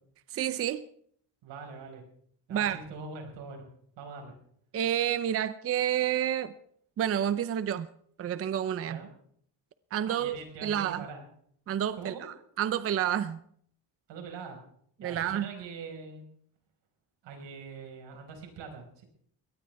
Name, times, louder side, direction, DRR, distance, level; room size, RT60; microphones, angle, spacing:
voice 1, 0.3-0.8 2.5-2.8 4.7-6.5 7.0-7.9 8.2-9.0 9.9-11.0 11.7-13.4 15.0-15.5, right 10 dB, 35° right, 13 dB, 0.6 m, -29 dB
voice 2, 1.4-2.0 2.5-3.6 4.0-4.3 8.8-9.1 10.1-11.3 11.9-12.3 14.1-14.6 15.0-16.3 17.2-19.0, right 5 dB, 85° right, 3 dB, 5.2 m, -43 dB
22.0 x 18.0 x 3.5 m, 0.64 s
cardioid pair, 165°, 42 cm